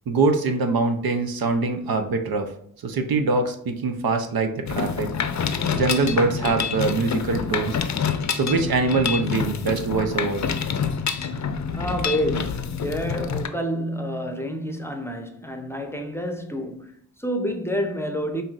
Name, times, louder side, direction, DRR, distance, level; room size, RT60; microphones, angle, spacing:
voice 1, 0.1-2.5 2.8-5.1 5.7-7.8 8.3-10.4, right 3 dB, 70° right, 0.7 m, -23 dB
Mechanisms, 4.7-13.5, left 6 dB, 50° left, 0.5 m, -27 dB
voice 2, 11.7-18.4, equal, 5° left, 0.7 m, -28 dB
5.6 x 2.7 x 2.4 m
cardioid pair, 50°, 37 cm